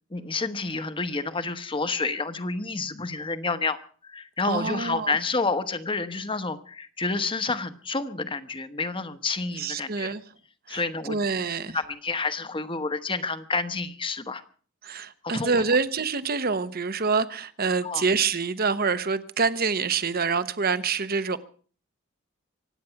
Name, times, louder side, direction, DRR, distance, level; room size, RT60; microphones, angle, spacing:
voice 1, 0.1-3.8 4.0-10.1 10.7-11.2 11.7-14.4 15.2-15.7 17.8-18.0, left 3 dB, 25° left, 1.1 m, -29 dB
voice 2, 4.4-5.2 9.6-10.2 10.7-11.8 14.8-21.4, right 4 dB, 45° right, 1.0 m, -26 dB
25.0 x 9.4 x 5.8 m
head